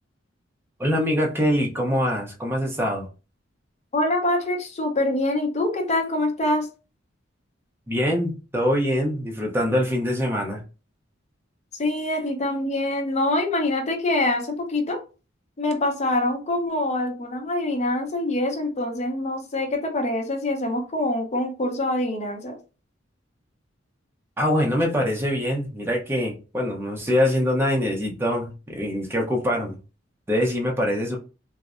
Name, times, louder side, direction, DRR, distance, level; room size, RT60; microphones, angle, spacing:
voice 1, 0.8-3.1 7.9-10.6 24.4-29.8 30.3-31.2, equal, 10° right, 0.5 m, -24 dB
voice 2, 3.9-6.7 11.8-15.0 15.6-22.6, left 1 dB, 35° left, 0.5 m, -25 dB
2.6 x 2.0 x 2.4 m
head